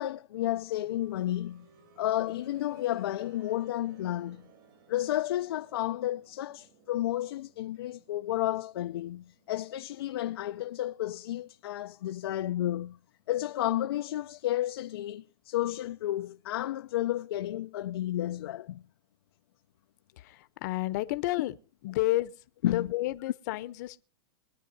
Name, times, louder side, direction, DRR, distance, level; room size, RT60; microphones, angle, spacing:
voice 1, 0.0-1.7 2.0-4.4 4.9-13.0 13.3-18.8 22.6-22.9, left 13 dB, 75° left, 0.5 m, -32 dB
sound 1, 0.8-11.6 12.9-13.0, right 5 dB, 55° right, 3.4 m, -60 dB
voice 2, 20.2-21.5 21.8-22.3 22.6-24.0, left 17 dB, 45° left, 0.8 m, -31 dB
24.0 x 9.5 x 2.7 m
supercardioid pair, 155°, 13 cm